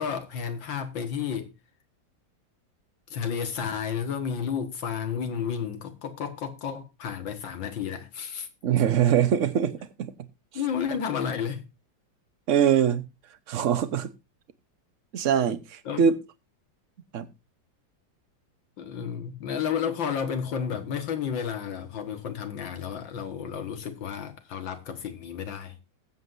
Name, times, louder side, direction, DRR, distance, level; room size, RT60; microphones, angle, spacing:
voice 1, 0.0-1.5 3.1-8.5 10.5-11.6 15.9-16.0 18.8-25.8, left 7 dB, 80° left, 2.3 m, -32 dB
voice 2, 8.6-10.1 12.5-13.0 13.5-14.1 15.1-16.2 17.1-17.3, right 8 dB, 50° right, 1.1 m, -23 dB
21.5 x 7.9 x 2.6 m
omnidirectional pair, 2.0 m